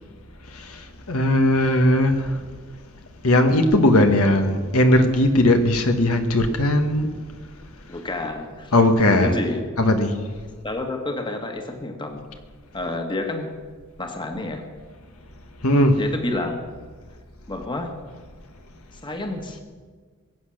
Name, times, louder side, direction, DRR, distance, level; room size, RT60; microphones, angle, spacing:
voice 1, 1.1-2.4 3.2-7.1 8.7-9.4 9.8-10.1 15.6-16.0, left 1 dB, 70° left, 6 dB, 1.4 m, -18 dB
voice 2, 7.9-8.7 9.0-9.7 10.6-12.3 12.7-13.5 14.0-14.7 16.0-16.6 17.5-18.0 19.0-19.6, left 2 dB, 20° left, 4 dB, 1.6 m, -29 dB
22.0 x 8.6 x 6.4 m, 1.5 s
head